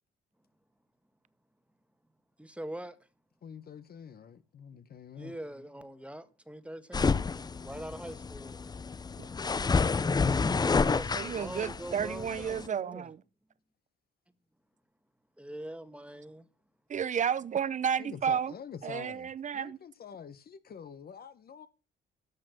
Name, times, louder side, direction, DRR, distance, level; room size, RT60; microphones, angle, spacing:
voice 1, 2.4-2.9 5.2-8.6 10.4-13.1 15.4-16.5, right 1 dB, 5° right, 1.4 m, -43 dB
voice 2, 3.4-5.4 18.0-21.7, left 7 dB, 50° left, 1.1 m, -46 dB
sound 1, 6.9-12.7, left 4 dB, 20° left, 0.5 m, -29 dB
voice 3, 11.1-13.2 16.9-18.5 18.8-19.8, right 8 dB, 40° right, 0.7 m, -32 dB
13.0 x 6.4 x 6.3 m
cardioid pair, 90°, 20 cm